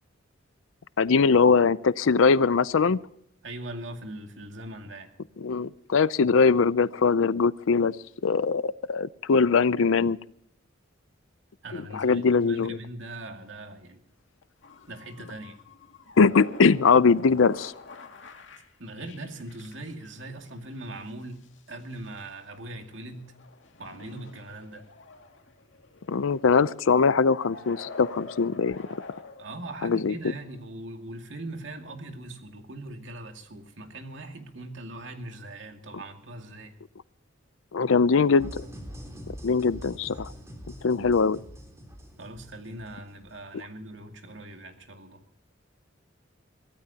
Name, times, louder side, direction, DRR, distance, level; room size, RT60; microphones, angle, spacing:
voice 1, 1.0-3.0 5.4-7.9 8.2-10.2 11.9-12.8 16.2-17.7 26.1-28.8 29.8-30.1 37.7-38.7 39.4-40.3 40.8-41.4 43.5-43.6, left 5 dB, 85° left, 17 dB, 0.5 m, -21 dB
voice 2, 3.4-5.1 11.6-14.0 14.9-15.6 18.8-21.4 21.7-23.3 23.8-24.8 29.4-36.7 42.2-45.2, right 1 dB, 65° right, 4 dB, 2.4 m, -40 dB
sound 1, 14.6-30.7, left 3 dB, 70° left, 2.4 m, -47 dB
sound 2, 38.4-43.3, equal, 15° right, 3.8 m, -43 dB
23.5 x 16.5 x 2.9 m, 0.70 s
head